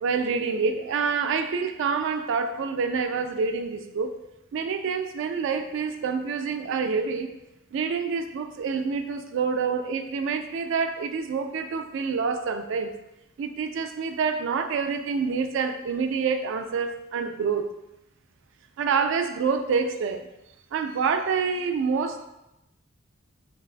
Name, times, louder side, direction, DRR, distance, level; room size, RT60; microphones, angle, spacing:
voice 1, 0.0-4.2 4.5-7.3 7.7-12.9 13.4-17.7 18.8-20.3 20.7-22.3, right 5 dB, 65° right, 7 dB, 0.3 m, -27 dB
4.5 x 2.2 x 2.4 m, 0.92 s
head